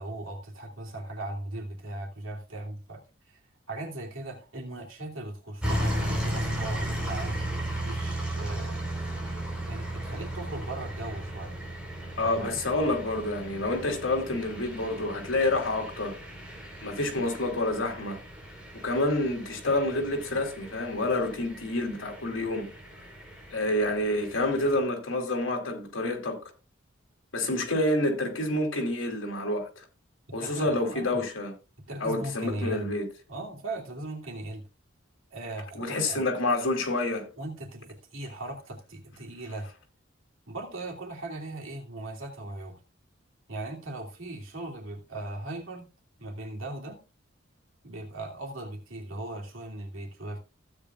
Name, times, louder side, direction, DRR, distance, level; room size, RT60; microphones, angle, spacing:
voice 1, 0.0-3.4 3.7-7.4 7.8-9.1 9.7-11.6 12.2-12.6 30.4-31.1 31.9-32.9 33.3-34.6 35.3-36.3 37.4-39.7 40.5-42.8 43.5-45.9 46.2-47.0 47.8-50.4, right 2 dB, 85° right, 2.8 m, -38 dB
sound 1, 5.6-24.8, right 1 dB, 5° right, 4.2 m, -36 dB
voice 2, 12.2-16.1 16.8-18.2 18.8-22.7 23.5-26.4 27.3-29.8 30.3-31.5 32.0-33.1 35.7-37.3, left 2 dB, 75° left, 3.2 m, -28 dB
15.5 x 8.8 x 2.4 m
head